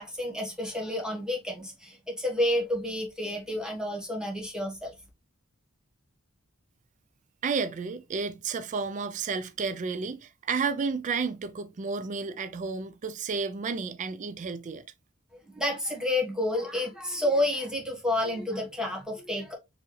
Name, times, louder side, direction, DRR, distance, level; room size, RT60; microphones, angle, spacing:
voice 1, 0.0-4.9 15.5-19.5, left 1 dB, 5° right, 1.4 m, -30 dB
voice 2, 7.4-14.8, right 5 dB, 35° right, 0.4 m, -31 dB
4.5 x 3.1 x 3.1 m
head